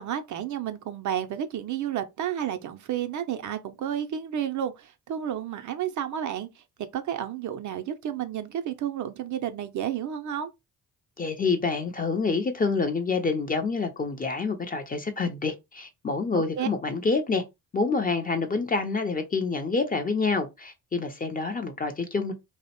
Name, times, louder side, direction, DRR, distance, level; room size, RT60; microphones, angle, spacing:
voice 1, 0.0-6.6 6.9-10.5 16.3-16.7, right 10 dB, 50° right, 0.4 m, -31 dB
voice 2, 11.2-17.4 17.7-22.3, left 4 dB, 25° left, 0.4 m, -27 dB
2.5 x 2.0 x 2.8 m
supercardioid pair, 65°, 38 cm